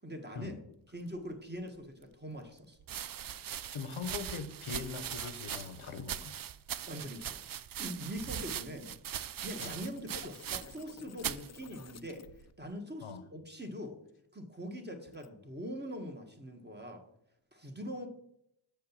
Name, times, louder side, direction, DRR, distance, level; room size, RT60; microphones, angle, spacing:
voice 1, 0.0-0.6 0.9-2.8 6.9-7.4 7.8-8.9 9.4-12.3 12.6-14.0 14.3-17.0 17.5-18.1, equal, 20° right, 4 dB, 1.6 m, -42 dB
sound 1, 1.8-1.9 2.8-10.9 11.2-11.5 12.3-12.7, right 9 dB, 50° right, 0.4 m, -40 dB
voice 2, 3.7-6.4 9.6-9.8 13.0-13.2, left 5 dB, 85° left, 11 dB, 0.9 m, -41 dB
sound 2, 4.7-6.0 9.6-12.5 15.1-15.3, left 7 dB, 35° left, 0.5 m, -52 dB
7.2 x 5.1 x 7.2 m, 0.77 s
wide cardioid pair, 75°, 48 cm